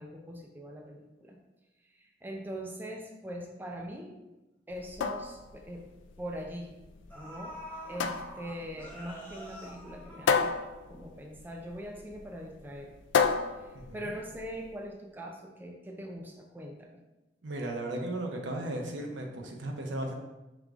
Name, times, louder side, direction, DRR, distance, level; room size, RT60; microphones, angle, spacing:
voice 1, 0.0-1.4 1.9-4.2 4.7-5.9 6.2-6.7 7.1-7.6 7.9-10.5 10.9-12.9 13.6-17.0, equal, 10° right, 1 dB, 0.4 m, -42 dB
sound 1, 4.7-14.7, left 5 dB, 80° left, 0.3 m, -33 dB
sound 2, 6.6-6.7 7.1-11.0 11.4-11.5, equal, 10° left, 0.8 m, -46 dB
voice 2, 13.7-14.1 17.4-20.1, right 1 dB, 75° right, 2 dB, 0.6 m, -36 dB
4.9 x 3.5 x 2.5 m, 1.0 s
head